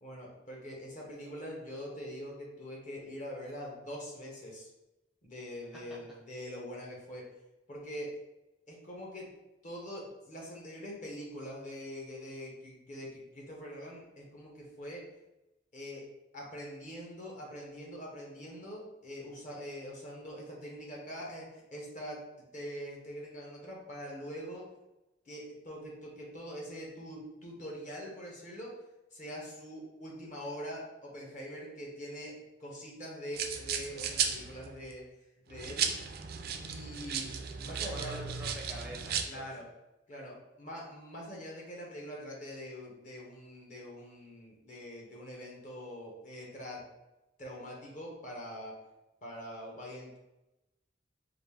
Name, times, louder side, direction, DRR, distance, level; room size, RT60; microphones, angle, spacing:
voice 1, 0.0-4.7 5.2-7.2 7.7-8.1 8.7-9.3 9.6-15.0 15.7-16.1 16.3-24.7 25.3-28.8 29.1-35.0 35.5-35.9 36.6-38.2 39.3-39.7 40.1-46.8 47.4-48.8 49.2-50.2, equal, 45° left, -2 dB, 1.0 m, -44 dB
sound 1, 33.3-34.9 35.5-39.2, right 7 dB, 55° right, 0.4 m, -35 dB
voice 2, 37.7-39.7, equal, 5° right, -4 dB, 0.5 m, -46 dB
4.1 x 2.5 x 3.3 m, 0.96 s
head